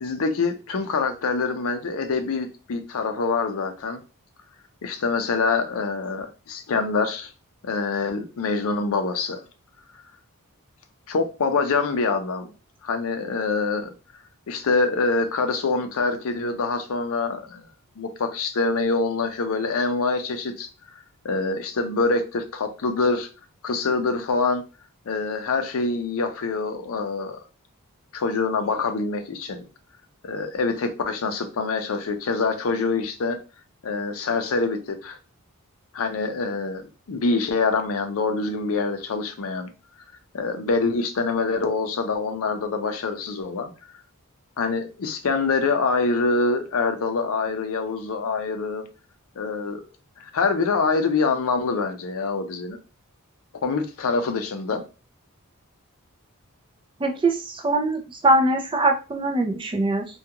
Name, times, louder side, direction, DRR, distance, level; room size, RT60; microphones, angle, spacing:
voice 1, 0.0-4.0 4.8-7.3 7.6-9.4 11.1-12.5 12.8-13.9 14.5-17.6 18.0-20.7 21.2-23.3 23.6-24.6 25.1-27.4 28.1-29.7 30.2-33.4 33.8-35.2 35.9-39.7 40.3-43.7 44.6-48.8 49.4-49.8 50.2-52.8 53.6-54.8, left 4 dB, 65° left, 0.5 m, -25 dB
voice 2, 57.0-60.1, right 2 dB, 20° right, 0.4 m, -22 dB
2.3 x 2.2 x 2.8 m
head